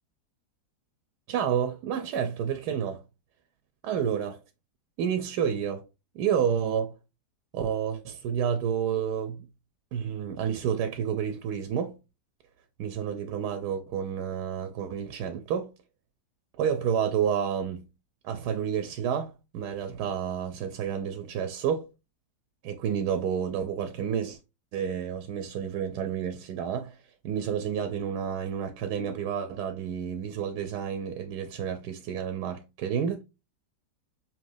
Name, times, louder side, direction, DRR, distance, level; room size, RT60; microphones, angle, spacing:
voice 1, 1.3-3.0 3.8-4.4 5.0-5.8 6.1-6.9 7.5-9.5 9.9-12.0 12.8-15.7 16.6-17.8 18.2-21.9 22.6-24.4 24.7-27.0 27.2-33.2, right 8 dB, 80° right, 1.1 m, -30 dB
5.5 x 3.0 x 2.5 m
omnidirectional pair, 1.8 m